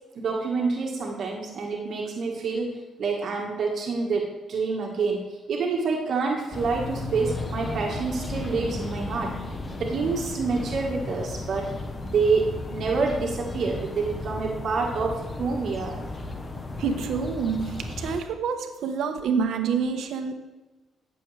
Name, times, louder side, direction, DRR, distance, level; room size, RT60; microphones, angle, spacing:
voice 1, 0.1-9.3 9.7-11.7 12.0-16.0, right 4 dB, 60° right, -1 dB, 1.6 m, -27 dB
sound 1, 6.5-18.2, left 2 dB, 30° left, 1.1 m, -34 dB
voice 2, 16.8-20.3, right 6 dB, 75° right, 7 dB, 1.1 m, -27 dB
15.0 x 7.0 x 3.3 m, 1.2 s
cardioid pair, 90°, 0 cm